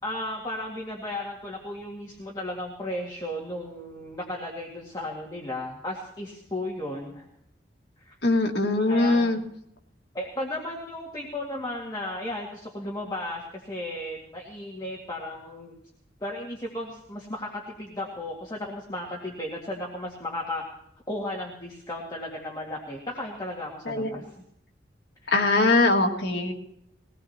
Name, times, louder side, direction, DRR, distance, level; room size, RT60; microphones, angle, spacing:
voice 1, 0.0-7.3 8.0-8.1 8.9-9.4 10.1-15.8 16.2-20.6 21.1-24.2 25.2-25.3, left 1 dB, 20° left, -3 dB, 2.0 m, -35 dB
voice 2, 8.2-9.4 23.9-24.2 25.3-26.5, left 2 dB, 60° left, 1 dB, 1.9 m, -22 dB
21.5 x 18.5 x 2.9 m, 0.75 s
head